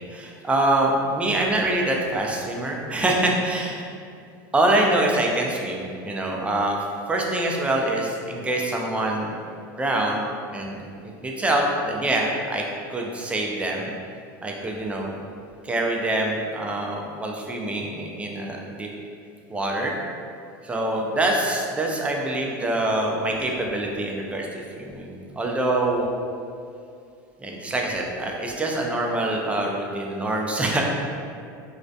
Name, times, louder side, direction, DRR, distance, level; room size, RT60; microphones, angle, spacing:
voice 1, 0.1-3.8 4.5-6.8 7.1-9.3 9.8-10.2 10.5-12.6 12.9-13.9 14.4-15.1 15.6-18.9 19.5-20.0 20.6-26.1 27.4-30.8, right 1 dB, 10° right, -1 dB, 0.3 m, -25 dB
2.3 x 2.1 x 2.6 m, 2.4 s
supercardioid pair, 105°, 10 cm